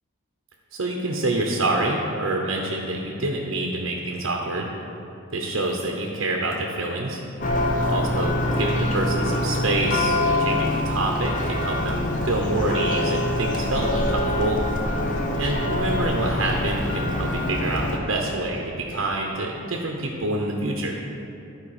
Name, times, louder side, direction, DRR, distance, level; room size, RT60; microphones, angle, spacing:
voice 1, 0.7-4.7 5.3-7.2 7.9-14.6 15.4-21.0, right 2 dB, 65° right, 0 dB, 0.7 m, -26 dB
Church bell, 7.4-18.0, left 1 dB, 40° left, 0.7 m, -25 dB
11.0 x 4.7 x 4.9 m, 2.9 s
head